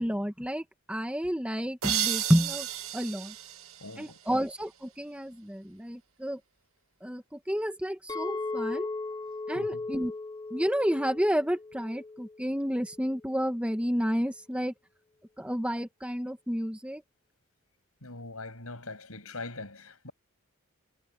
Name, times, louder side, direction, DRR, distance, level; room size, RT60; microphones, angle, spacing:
voice 1, 0.0-2.7 2.9-3.3 4.0-6.4 7.0-8.9 9.5-10.1 10.5-14.7 15.4-17.0, equal, 5° right, 1.7 m, -30 dB
sound 1, 1.8-4.5, right 10 dB, 75° right, 2.0 m, -33 dB
voice 2, 3.8-4.4 9.5-9.8 18.0-20.1, left 2 dB, 75° left, 6.9 m, -42 dB
Chink clink, 8.1-12.4 12.8-13.2, left 3 dB, 20° left, 0.8 m, -37 dB
head